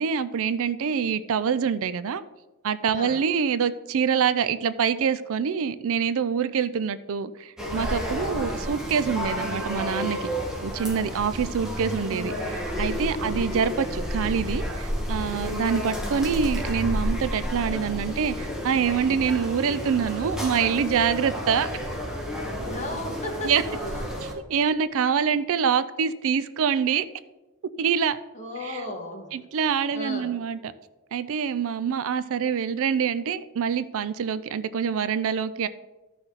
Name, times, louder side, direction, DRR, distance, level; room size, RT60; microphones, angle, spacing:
voice 1, 0.0-2.2 2.6-10.2 10.6-21.7 23.4-23.6 24.2-27.1 27.8-28.2 28.6-28.8 29.3-30.6 31.1-35.7, right 7 dB, 65° right, 15 dB, 0.4 m, -25 dB
sound 1, 7.6-24.3, equal, 5° right, 1.7 m, -31 dB
voice 2, 8.3-8.6 13.1-13.5 22.7-24.2 28.3-29.3 29.9-30.3, left 1 dB, 30° left, -1 dB, 2.1 m, -35 dB
13.5 x 5.8 x 4.1 m, 1.1 s
head